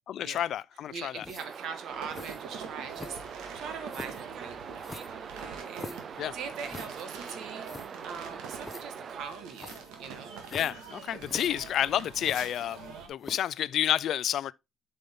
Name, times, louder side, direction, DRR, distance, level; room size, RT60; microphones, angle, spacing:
voice 1, 0.1-1.3 6.2-6.4 10.5-14.5, left 11 dB, 60° left, 0.3 m, -30 dB
voice 2, 0.9-3.2 3.5-6.0 6.3-7.7 8.0-10.4, right 6 dB, 65° right, 1.6 m, -42 dB
sound 1, 1.2-1.6 2.1-2.4 2.9-3.4 3.9-4.3 4.8-6.1 6.7-7.1 7.4-7.5 7.6-7.9 8.6-8.8 9.5-9.9 10.4-10.9 11.2-11.5 12.2-12.9 13.2-13.6, left 3 dB, 20° left, 0.9 m, -44 dB
sound 2, 1.4-9.2, right 6 dB, 40° right, 0.4 m, -43 dB
sound 3, 1.9-13.1, right 6 dB, 85° right, 1.6 m, -45 dB
7.7 x 5.4 x 3.6 m
cardioid pair, 125°, 0 cm